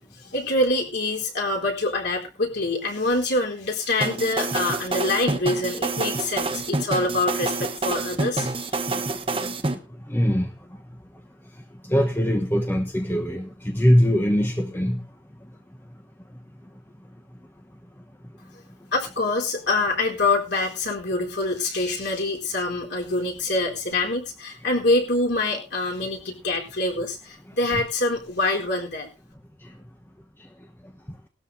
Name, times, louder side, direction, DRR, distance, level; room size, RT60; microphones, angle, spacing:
voice 1, 0.2-8.5 18.9-29.1, left 2 dB, 55° left, 0 dB, 3.9 m, -25 dB
sound 1, 4.0-9.8, right 3 dB, 25° right, 1.1 m, -27 dB
voice 2, 10.1-10.5 11.9-15.0, equal, 10° left, 2 dB, 1.1 m, -21 dB
19.0 x 13.0 x 2.7 m, 0.29 s
head